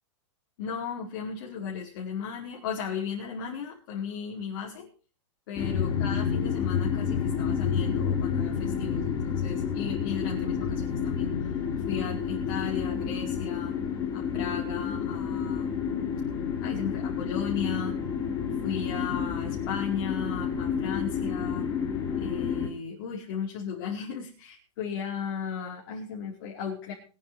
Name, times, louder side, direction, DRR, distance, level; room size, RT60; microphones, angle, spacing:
voice 1, 0.6-4.9 5.5-11.3 11.8-13.7 14.1-15.8 16.6-17.9 18.6-21.6 22.2-26.9, left 7 dB, 45° left, -5 dB, 5.0 m, -35 dB
sound 1, 5.6-22.7, left 7 dB, 20° left, 2.6 m, -29 dB
23.5 x 9.5 x 5.1 m, 0.37 s
supercardioid pair, 170°, 16 cm